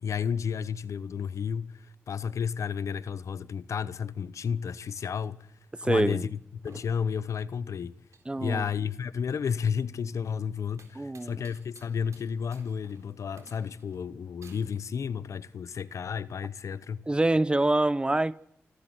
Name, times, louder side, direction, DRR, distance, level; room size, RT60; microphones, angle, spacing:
voice 1, 0.0-5.5 5.8-8.0 8.4-17.0, left 7 dB, 80° left, 0.8 m, -32 dB
voice 2, 5.8-6.3 8.3-8.7 11.0-11.4 17.1-18.4, right 2 dB, 20° right, 0.7 m, -25 dB
sound 1, 6.4-14.8, right 4 dB, 75° right, 3.9 m, -59 dB
27.5 x 12.0 x 7.8 m
cardioid pair, 65°, 5 cm